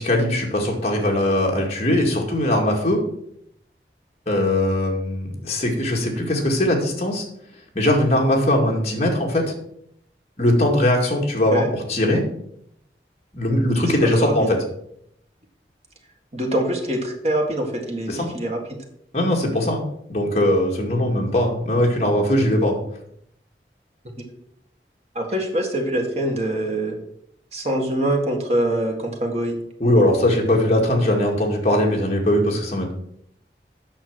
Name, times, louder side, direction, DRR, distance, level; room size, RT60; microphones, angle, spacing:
voice 1, 0.0-3.0 4.3-7.3 7.7-9.5 10.4-11.6 11.9-12.2 13.3-14.6 18.1-18.3 19.1-19.8 20.1-22.8 29.8-32.9, left 1 dB, 35° left, -1 dB, 2.2 m, -20 dB
voice 2, 14.2-14.5 16.3-18.6 25.2-27.0 27.5-29.6 31.6-31.7, right 1 dB, 35° right, 2 dB, 1.8 m, -24 dB
8.8 x 6.2 x 6.3 m, 0.73 s
head